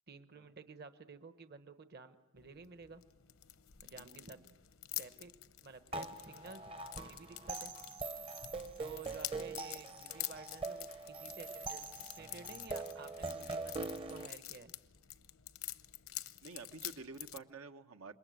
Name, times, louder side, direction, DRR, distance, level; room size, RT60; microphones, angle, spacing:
voice 1, 0.1-3.0 3.8-4.4 5.0-5.3 5.6-6.7 7.0-7.7 8.8-14.7, right 4 dB, 45° right, 10 dB, 1.1 m, -53 dB
sound 1, 2.4-17.4, left 14 dB, 70° left, 0.9 m, -48 dB
voice 2, 4.0-4.4 16.4-18.1, right 3 dB, 80° right, 7 dB, 1.3 m, -50 dB
sound 2, 5.9-14.3, right 3 dB, 25° right, 0.8 m, -43 dB
27.0 x 22.0 x 9.4 m, 1.2 s
head